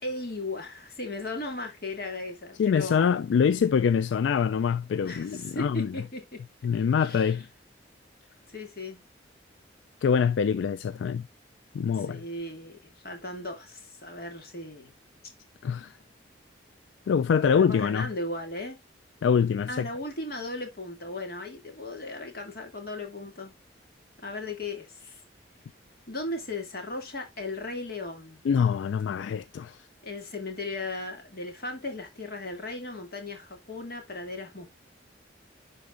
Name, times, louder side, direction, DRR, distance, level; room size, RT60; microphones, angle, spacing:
voice 1, 0.0-3.1 5.0-6.4 6.7-7.4 8.5-9.1 12.0-14.9 17.6-18.8 19.7-23.5 24.2-25.2 26.1-28.4 30.0-34.7, left 2 dB, 50° left, 2.3 m, -37 dB
voice 2, 2.6-5.9 6.6-7.4 10.0-11.3 11.7-12.2 15.6-15.9 17.1-18.1 19.2-19.8 28.5-29.8, left 6 dB, 80° left, 0.3 m, -24 dB
11.0 x 4.0 x 2.5 m
head